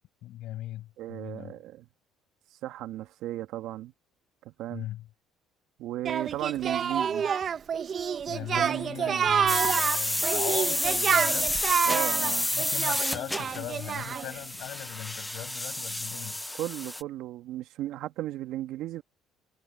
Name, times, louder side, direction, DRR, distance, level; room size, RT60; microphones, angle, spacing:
voice 1, 0.2-1.5 4.7-5.1 8.3-11.7 12.2-16.6, left 14 dB, 70° left, 6.9 m, -39 dB
voice 2, 1.0-1.9 2.5-3.9 4.4-4.9 5.8-7.3 8.5-9.3 11.9-12.5 16.6-19.0, right 14 dB, 70° right, 2.5 m, -35 dB
Singing, 6.0-14.4, right 7 dB, 45° right, 1.5 m, -28 dB
sound 1, 9.5-17.0, left 1 dB, 5° left, 0.5 m, -30 dB
supercardioid pair, 80°, 0 cm